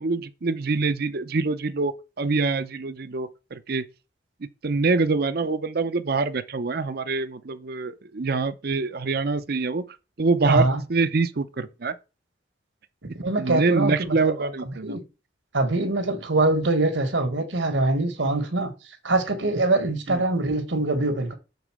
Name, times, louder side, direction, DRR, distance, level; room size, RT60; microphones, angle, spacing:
voice 1, 0.0-3.8 4.4-9.8 10.2-11.9 13.4-15.0 20.1-20.2, right 3 dB, 55° right, 0.6 m, -25 dB
voice 2, 10.4-10.8 13.0-15.0 15.5-18.7 19.0-21.3, right 2 dB, 80° right, 1.6 m, -24 dB
6.9 x 4.0 x 6.1 m
head